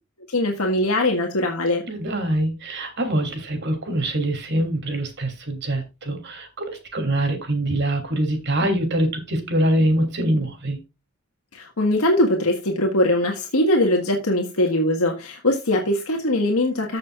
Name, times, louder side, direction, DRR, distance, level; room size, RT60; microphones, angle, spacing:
voice 1, 0.3-1.8 11.5-17.0, left 1 dB, 80° left, 1.7 m, -21 dB
voice 2, 1.9-10.8, right 1 dB, 50° right, 3.0 m, -24 dB
14.5 x 6.5 x 2.4 m
head